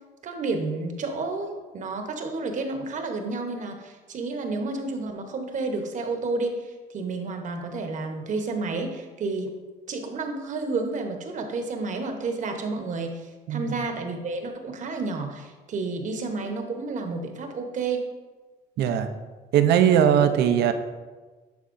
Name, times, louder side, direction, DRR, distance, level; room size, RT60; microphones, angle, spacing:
voice 1, 0.2-9.5 9.9-18.0, right 3 dB, 50° right, 5 dB, 0.9 m, -31 dB
voice 2, 18.8-19.1 19.5-20.7, right 9 dB, 75° right, 9 dB, 0.6 m, -19 dB
10.5 x 4.3 x 2.6 m, 1.3 s
cardioid pair, 110°, 17 cm